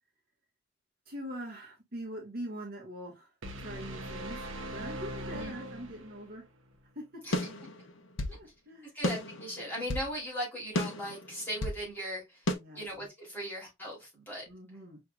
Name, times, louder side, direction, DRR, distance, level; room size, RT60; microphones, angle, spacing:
voice 1, 1.0-4.4 4.7-6.5 6.9-7.2 8.3-8.9 12.5-12.8 14.5-15.0, equal, 45° right, 1.5 m, -43 dB
sound 1, 3.4-6.4, right 1 dB, 70° right, 1.0 m, -40 dB
sound 2, 7.3-8.4 9.0-10.1 10.7-11.8 12.5-12.6, left 1 dB, 65° left, 0.8 m, -33 dB
voice 2, 8.9-12.5 12.7-14.4, equal, 10° left, 2.6 m, -38 dB
5.6 x 3.4 x 2.2 m
head